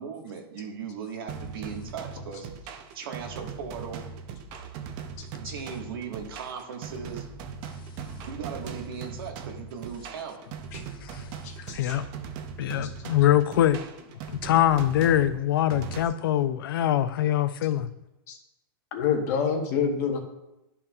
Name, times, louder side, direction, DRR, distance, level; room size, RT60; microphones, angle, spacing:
voice 1, 0.0-2.5 2.9-4.0 5.4-7.3 8.3-10.4, right 6 dB, 65° right, 2 dB, 1.6 m, -38 dB
sound 1, 1.3-16.1, right 6 dB, 30° right, 0.6 m, -40 dB
voice 2, 5.2-5.5 10.7-10.8 11.4-11.9 12.8-12.9 18.3-18.4 18.9-20.2, left 6 dB, 40° left, 3 dB, 1.2 m, -28 dB
voice 3, 12.6-13.8 14.3-17.9, left 12 dB, 65° left, 12 dB, 0.5 m, -23 dB
11.5 x 5.6 x 2.4 m, 0.91 s
supercardioid pair, 170°, 13 cm